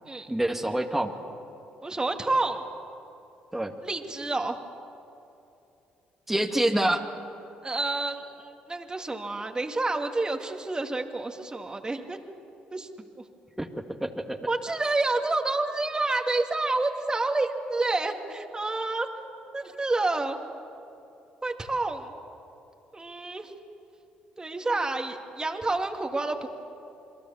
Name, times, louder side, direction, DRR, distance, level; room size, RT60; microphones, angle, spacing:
voice 1, 0.3-1.1 3.5-3.7 6.3-7.0 13.6-13.7 14.0-14.4, right 1 dB, 5° right, 3 dB, 2.1 m, -26 dB
voice 2, 1.8-2.6 3.8-4.6 7.6-12.2 12.7-12.9 14.5-19.1 19.5-20.4 21.4-22.1 22.9-23.5 24.4-26.5, right 2 dB, 20° right, 4 dB, 2.4 m, -29 dB
28.0 x 22.0 x 7.2 m, 2.7 s
hypercardioid pair, 55°, 4 cm